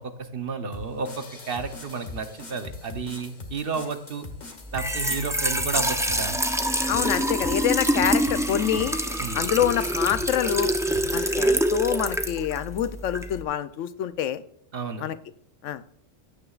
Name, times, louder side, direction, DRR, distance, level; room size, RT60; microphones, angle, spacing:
voice 1, 0.0-4.3 4.7-6.4 9.2-9.4 14.7-15.1, right 5 dB, 50° right, 8 dB, 1.0 m, -32 dB
sound 1, 0.7-11.4, left 3 dB, 35° left, 1.4 m, -42 dB
Trickle dribble / Fill (with liquid), 4.6-13.4, right 1 dB, 5° right, 0.4 m, -26 dB
voice 2, 6.9-9.0 9.3-10.7 11.1-14.4 15.0-15.2 15.6-15.8, left 10 dB, 85° left, 13 dB, 1.0 m, -26 dB
15.0 x 9.8 x 2.4 m, 0.71 s
omnidirectional pair, 1.3 m